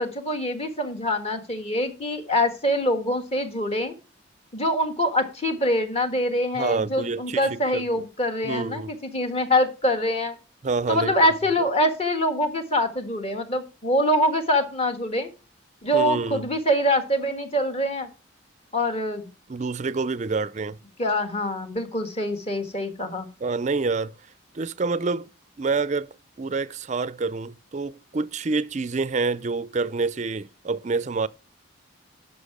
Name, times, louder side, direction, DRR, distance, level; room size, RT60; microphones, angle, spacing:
voice 1, 0.0-3.9 4.5-10.4 10.9-15.3 15.8-18.1 18.7-19.3 21.0-23.3, left 1 dB, 30° left, 1.5 m, -24 dB
voice 2, 6.6-8.0 8.4-8.9 10.6-11.1 15.9-16.4 19.5-20.8 23.4-24.1 24.5-25.3 25.6-31.3, right 4 dB, 35° right, 0.4 m, -27 dB
11.5 x 5.8 x 4.8 m
head